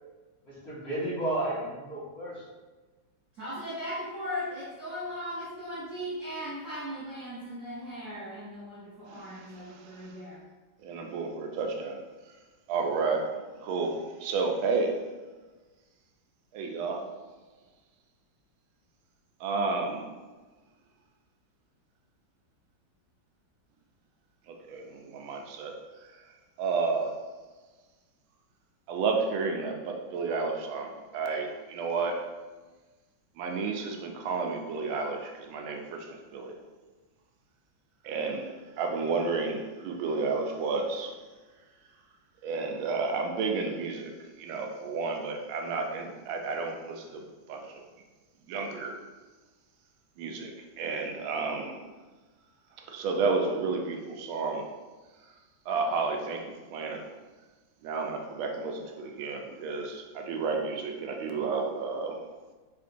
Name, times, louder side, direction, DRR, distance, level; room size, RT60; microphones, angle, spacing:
voice 1, 0.4-2.5, right 1 dB, 35° left, -10 dB, 1.6 m, -32 dB
voice 2, 3.3-10.4, equal, 55° right, -9 dB, 0.9 m, -38 dB
voice 3, 9.1-10.0 10.8-12.0 12.7-14.9 16.5-17.0 19.4-20.1 24.5-25.8 26.1-26.2 26.6-27.2 28.9-32.2 33.4-36.5 38.0-41.1 42.4-47.8 48.5-49.0 50.2-50.5 50.8-51.8 52.8-54.7 55.7-57.0 57.8-62.2, right 4 dB, 85° right, 3 dB, 1.4 m, -31 dB
4.2 x 3.8 x 2.5 m, 1.3 s
omnidirectional pair, 2.2 m